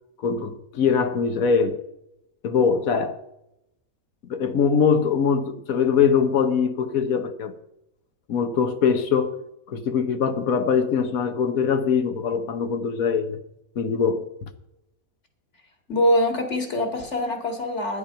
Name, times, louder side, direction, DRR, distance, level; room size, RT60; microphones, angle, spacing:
voice 1, 0.2-1.8 2.4-3.2 4.3-7.5 8.3-9.4 9.7-13.4 13.8-14.3, left 6 dB, 70° left, 1.4 m, -22 dB
voice 2, 15.9-18.0, left 1 dB, 50° left, 2.4 m, -23 dB
11.0 x 10.5 x 5.6 m
omnidirectional pair, 1.6 m